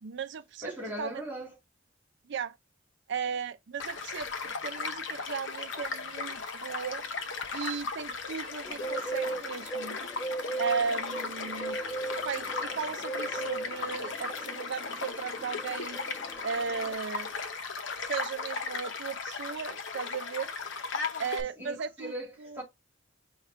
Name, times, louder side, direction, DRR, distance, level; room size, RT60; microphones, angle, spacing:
voice 1, 0.0-0.7 1.0-1.2 2.3-2.5 3.1-7.0 7.5-10.0 10.6-11.8 12.2-16.0 16.4-17.3 18.1-20.5 21.2-22.1 22.4-22.6, right 6 dB, 65° right, 0.5 m, -36 dB
voice 2, 0.6-1.5 21.6-22.6, equal, 10° right, 2.0 m, -39 dB
Child speech kid speaking / Stream / Car passing by, 3.8-21.4, left 4 dB, 70° left, 0.7 m, -36 dB
Bird, 8.6-16.9, right 2 dB, 20° left, 0.4 m, -38 dB
5.0 x 2.4 x 4.3 m
head